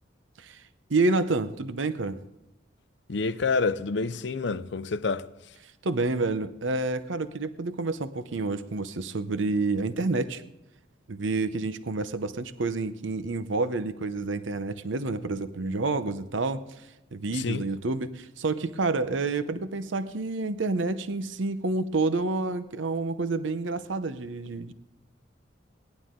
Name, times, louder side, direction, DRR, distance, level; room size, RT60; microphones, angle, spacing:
voice 1, 0.9-2.2 5.8-10.4 11.1-16.6 17.1-24.7, right 3 dB, 80° right, 0.8 m, -29 dB
voice 2, 3.1-5.3 17.3-17.6, left 4 dB, 65° left, 0.6 m, -28 dB
18.5 x 11.5 x 3.8 m
head